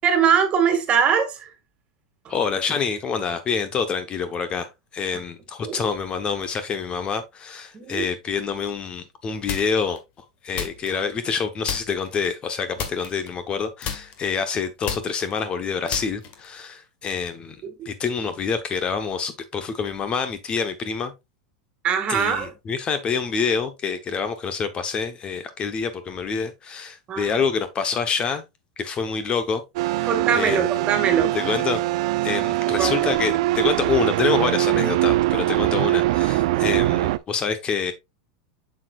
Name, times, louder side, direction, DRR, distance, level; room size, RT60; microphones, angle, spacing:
voice 1, 0.0-1.5 5.6-5.8 7.7-8.0 17.6-17.7 21.8-22.5 27.1-27.4 30.1-31.4 32.8-33.1, right 7 dB, 35° right, 1.9 m, -22 dB
voice 2, 2.3-10.0 10.4-21.1 22.1-28.4 28.8-30.7 31.3-31.8 32.2-37.9, left 6 dB, 30° left, 0.9 m, -27 dB
sound 1, 9.5-10.0 10.5-11.4 11.7-12.2 12.8-13.6 13.8-16.6, left 7 dB, 45° left, 1.7 m, -33 dB
sound 2, 29.8-37.2, right 16 dB, 65° right, 0.4 m, -22 dB
7.4 x 6.4 x 2.3 m
hypercardioid pair, 120°, 4 cm